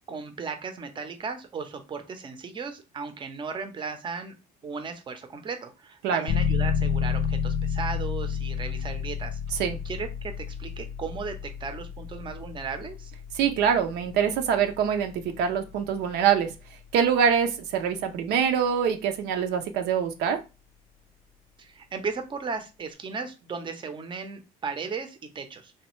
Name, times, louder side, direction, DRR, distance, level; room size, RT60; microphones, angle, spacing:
voice 1, 0.1-4.3 4.6-9.4 9.8-13.1 21.6-25.7, right 5 dB, 30° right, 7 dB, 0.6 m, -36 dB
sound 1, 6.3-16.8, left 7 dB, 60° left, 0.6 m, -31 dB
voice 2, 13.4-16.5 16.9-20.4, right 7 dB, 85° right, 6 dB, 0.5 m, -24 dB
3.2 x 2.3 x 3.0 m, 0.27 s
cardioid pair, 110°, 17 cm